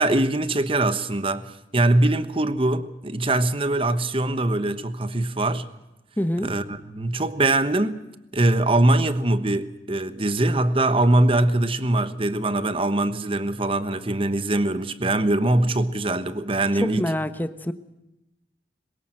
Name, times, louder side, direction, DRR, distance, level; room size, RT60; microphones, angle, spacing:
voice 1, 0.0-5.7 6.4-8.0 8.3-17.0, right 2 dB, 30° right, 1.2 m, -22 dB
voice 2, 6.2-6.5 16.7-17.7, equal, 10° left, 1.0 m, -26 dB
22.5 x 20.5 x 7.8 m
head